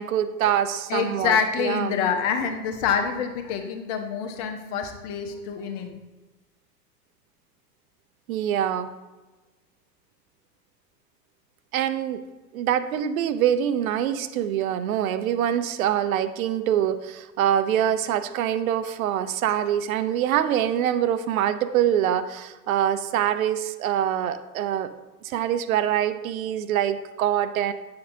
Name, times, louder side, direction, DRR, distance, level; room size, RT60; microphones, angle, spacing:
voice 1, 0.0-2.0 8.3-8.9 11.7-12.2 12.5-24.9 25.2-27.7, right 10 dB, 60° right, 12 dB, 0.6 m, -24 dB
voice 2, 0.9-5.9, left 7 dB, 50° left, 5 dB, 1.1 m, -26 dB
8.1 x 6.8 x 2.6 m, 1.2 s
figure-of-eight pair, 90°, 47 cm